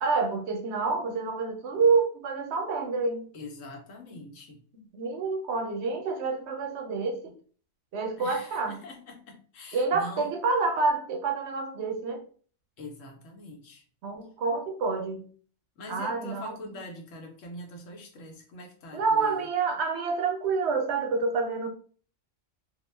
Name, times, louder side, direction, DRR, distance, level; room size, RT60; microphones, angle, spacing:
voice 1, 0.0-3.3 4.9-7.3 7.9-8.8 9.7-12.2 14.0-15.2 15.9-16.5 18.9-21.7, right 4 dB, 70° right, 0.8 m, -28 dB
voice 2, 3.3-4.6 8.2-10.3 12.8-13.8 15.8-19.5, left 2 dB, 85° left, 1.1 m, -43 dB
2.4 x 2.1 x 3.0 m
omnidirectional pair, 1.3 m